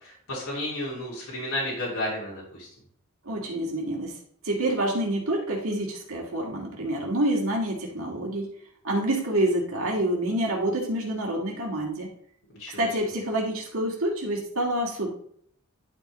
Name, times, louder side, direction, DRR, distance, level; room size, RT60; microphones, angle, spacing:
voice 1, 0.0-2.7 12.6-12.9, left 1 dB, 70° left, -5 dB, 2.8 m, -32 dB
voice 2, 3.3-4.1 4.4-8.5 8.8-12.1 12.8-15.1, right 1 dB, 70° right, -2 dB, 2.2 m, -27 dB
11.0 x 5.4 x 3.2 m, 0.63 s
head